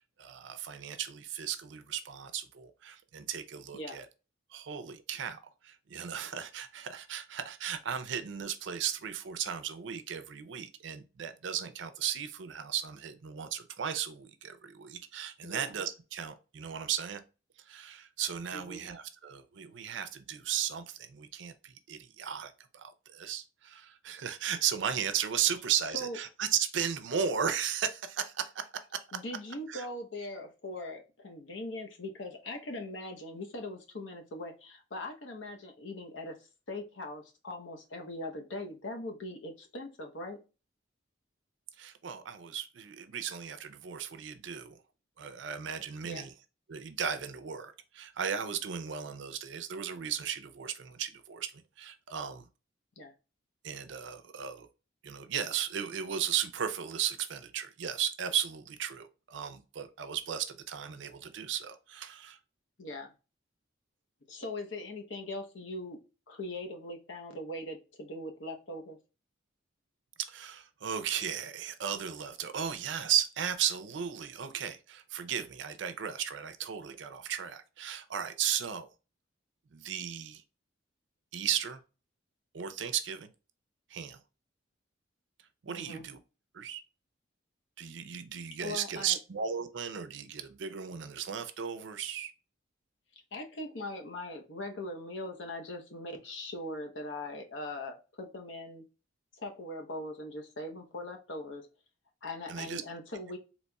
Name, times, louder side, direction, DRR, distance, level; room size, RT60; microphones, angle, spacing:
voice 1, 0.2-4.1 4.5-17.2 17.7-29.0 29.7-29.9 41.8-44.8 45.2-46.3 46.7-52.5 53.6-54.7 55.0-62.4 70.2-78.9 79.7-80.4 81.3-81.8 82.5-83.3 83.9-84.2 85.6-86.2 86.5-86.8 87.8-92.3 102.5-102.8, right 8 dB, 75° right, 0.5 m, -35 dB
voice 2, 15.4-15.7 18.5-18.9 25.9-26.2 29.1-36.4 36.7-40.4 46.0-46.3 53.0-53.1 62.8-63.1 64.3-66.0 66.3-69.0 85.7-86.1 88.6-89.2 93.3-98.8 99.3-101.7 102.2-103.4, left 1 dB, 75° left, 0.8 m, -41 dB
4.1 x 2.9 x 2.2 m
head